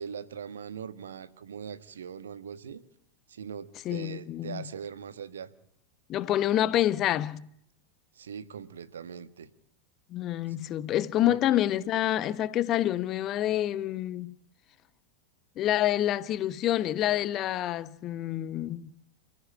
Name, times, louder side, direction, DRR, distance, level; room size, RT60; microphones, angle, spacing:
voice 1, 0.0-2.8 3.3-5.5 8.1-9.5 11.2-11.4, right 7 dB, 65° right, 1.5 m, -41 dB
voice 2, 3.8-4.7 6.1-7.5 10.1-14.3 15.6-18.9, left 13 dB, 35° left, 1.2 m, -27 dB
29.5 x 15.0 x 8.8 m
figure-of-eight pair, 90°, 0 cm